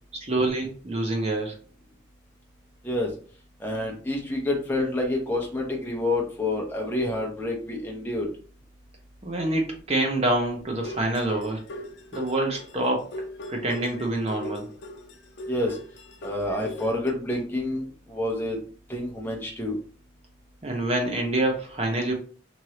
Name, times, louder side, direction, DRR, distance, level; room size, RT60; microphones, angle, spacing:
voice 1, 0.1-1.5 9.2-11.6 12.1-13.1 13.5-14.7 20.6-22.1, right 2 dB, 30° right, 2 dB, 0.7 m, -26 dB
voice 2, 3.6-8.3 15.5-15.8 16.2-18.6 18.9-19.8, left 1 dB, 10° left, -2 dB, 0.7 m, -28 dB
sound 1, 10.7-17.1, left 1 dB, 70° left, 0.5 m, -40 dB
3.1 x 2.6 x 2.8 m, 0.42 s
head